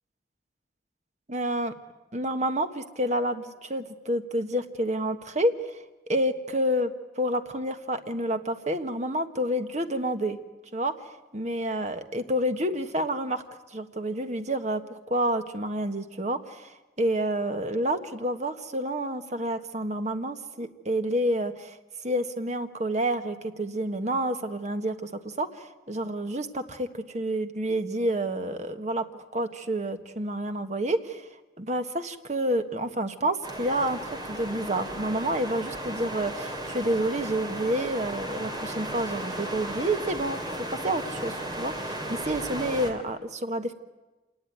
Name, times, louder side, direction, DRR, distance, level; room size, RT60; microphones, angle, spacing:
voice 1, 1.3-1.7 2.1-5.8 6.1-6.9 7.2-10.4 10.7-10.9 11.3-13.4 13.7-21.8 22.0-31.3 31.6-40.4 40.8-43.7, right 1 dB, 40° right, 8 dB, 1.4 m, -29 dB
sound 1, 33.4-42.9, right 1 dB, 25° right, 3.1 m, -35 dB
27.0 x 19.0 x 9.4 m, 1.1 s
head